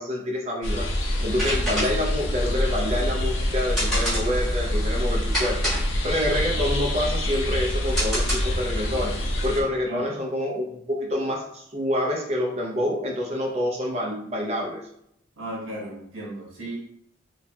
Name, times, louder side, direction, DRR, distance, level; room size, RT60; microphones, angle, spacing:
voice 1, 0.0-9.1 9.4-14.8, left 1 dB, 30° right, -2 dB, 0.5 m, -27 dB
sound 1, 0.6-9.6, left 1 dB, 65° left, 0.5 m, -26 dB
sound 2, 1.4-8.8, equal, ahead, 1.2 m, -30 dB
voice 2, 15.4-16.8, right 1 dB, 85° right, -4 dB, 0.9 m, -35 dB
3.1 x 2.2 x 2.6 m, 0.74 s
head